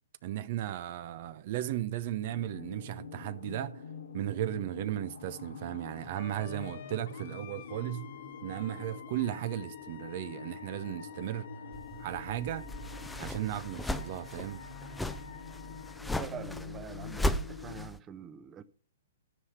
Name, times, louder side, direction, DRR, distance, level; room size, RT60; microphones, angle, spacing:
voice 1, 0.2-3.8 4.1-8.1 8.4-11.5 12.0-12.7 13.2-14.6, right 12 dB, 50° right, 0.8 m, -35 dB
sound 1, 2.3-17.9, left 5 dB, 80° left, 2.3 m, -46 dB
Wind instrument woodwind instrument, 6.1-16.0, left 10 dB, 55° left, 1.2 m, -51 dB
sound 2, 11.7-18.0, left 1 dB, 5° left, 0.6 m, -37 dB
voice 2, 16.2-18.6, right 8 dB, 20° right, 0.9 m, -45 dB
13.0 x 5.7 x 5.7 m
hypercardioid pair, 135°, 0 cm